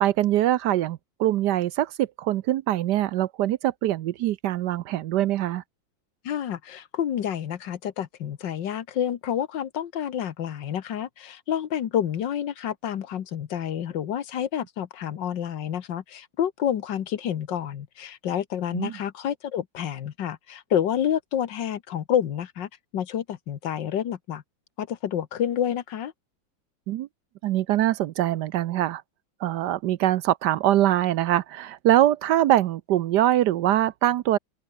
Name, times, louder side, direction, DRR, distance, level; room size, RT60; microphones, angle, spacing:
voice 1, 0.0-5.6 18.7-18.9 26.9-27.1 27.4-29.0 29.4-34.4, right 13 dB, 70° right, 1.1 m, -23 dB
voice 2, 6.2-24.4 24.8-26.1, left 9 dB, 70° left, 1.8 m, -29 dB
open air
omnidirectional pair, 2.1 m